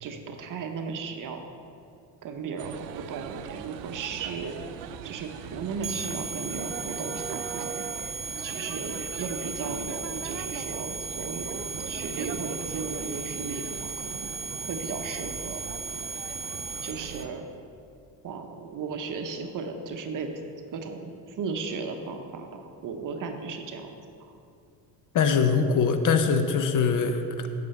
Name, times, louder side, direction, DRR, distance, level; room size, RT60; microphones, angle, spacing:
voice 1, 0.0-1.4 2.2-4.7 5.0-7.8 8.4-14.2 14.7-15.6 16.8-17.5 18.2-20.3 20.7-23.9 24.2-24.3, right 5 dB, 45° right, 5 dB, 0.9 m, -35 dB
sound 1, 2.6-17.3, right 9 dB, 90° right, 0.5 m, -40 dB
sound 2, 5.8-17.2, right 4 dB, 15° right, 0.3 m, -36 dB
voice 2, 25.1-27.5, left 5 dB, 45° left, 8 dB, 0.7 m, -23 dB
6.7 x 4.9 x 6.9 m, 2.5 s
supercardioid pair, 90°, 45 cm